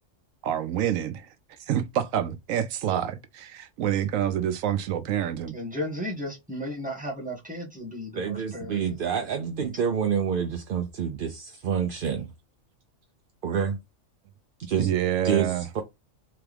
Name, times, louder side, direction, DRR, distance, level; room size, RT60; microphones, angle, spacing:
voice 1, 0.4-1.3 1.7-5.6 14.8-15.7, right 10 dB, 85° right, 1.0 m, -27 dB
voice 2, 5.5-8.8, left 1 dB, 5° right, 1.6 m, -34 dB
voice 3, 8.1-12.3 13.4-13.8 14.6-14.9 15.2-15.8, right 7 dB, 55° right, 0.6 m, -28 dB
3.8 x 3.4 x 3.4 m
omnidirectional pair, 1.4 m